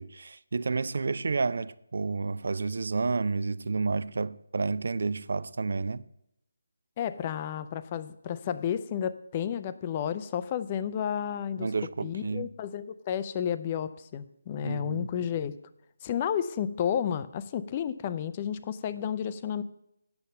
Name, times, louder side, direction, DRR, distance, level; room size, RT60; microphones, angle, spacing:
voice 1, 0.0-6.0 11.6-12.5 14.6-15.1, right 4 dB, 55° right, 0.4 m, -30 dB
voice 2, 7.0-11.7 12.0-15.6 16.0-19.6, left 9 dB, 20° left, 0.4 m, -31 dB
9.2 x 6.9 x 6.5 m
figure-of-eight pair, 170°, 0 cm